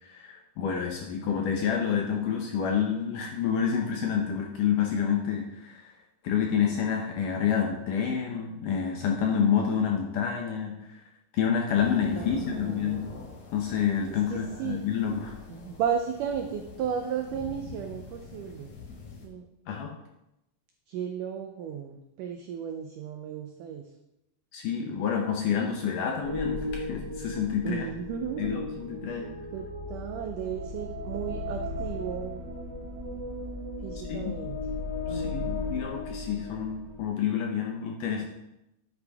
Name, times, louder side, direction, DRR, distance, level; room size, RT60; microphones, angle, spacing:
voice 1, 0.0-5.9 6.2-11.0 11.3-13.0 13.5-15.3 19.7-20.0 24.5-27.9 28.4-29.3 34.1-34.3 35.1-38.3, left 7 dB, 75° left, 1 dB, 2.0 m, -28 dB
sound 1, 11.7-19.3, left 4 dB, 55° left, 2.5 m, -45 dB
voice 2, 12.1-13.1 14.1-14.8 15.5-18.7 19.2-19.5 20.9-23.9 27.6-28.6 29.1-29.2 29.5-32.4 33.8-34.6 35.1-35.6, right 8 dB, 85° right, 5 dB, 1.8 m, -34 dB
sound 2, 26.2-37.1, left 2 dB, 70° right, 1.0 m, -36 dB
10.5 x 8.3 x 3.5 m, 0.88 s
omnidirectional pair, 4.6 m